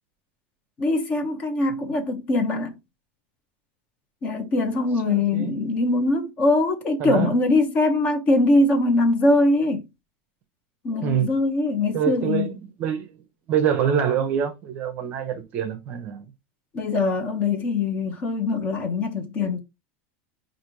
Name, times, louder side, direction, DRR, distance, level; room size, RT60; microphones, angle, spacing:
voice 1, 0.8-2.8 4.2-9.8 10.8-12.5 16.7-19.6, left 2 dB, 25° left, 0.7 m, -22 dB
voice 2, 5.1-5.5 7.0-7.3 11.0-11.4 11.9-13.1 13.5-16.3, right 8 dB, 30° right, 0.6 m, -25 dB
4.8 x 2.5 x 3.0 m
supercardioid pair, 175°, 6 cm